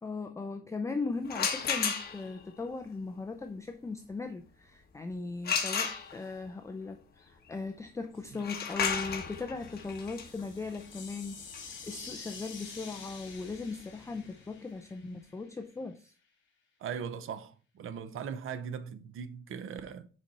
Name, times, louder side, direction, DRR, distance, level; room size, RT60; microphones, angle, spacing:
voice 1, 0.0-16.1, left 3 dB, 15° left, 0.5 m, -38 dB
sound 1, 1.3-2.4 5.4-6.5 8.3-14.0, left 6 dB, 50° left, 1.4 m, -34 dB
sound 2, 9.6-15.5, left 5 dB, 65° left, 2.1 m, -48 dB
voice 2, 16.8-20.1, right 7 dB, 85° right, 0.8 m, -39 dB
6.4 x 5.2 x 4.2 m
wide cardioid pair, 175°, 21 cm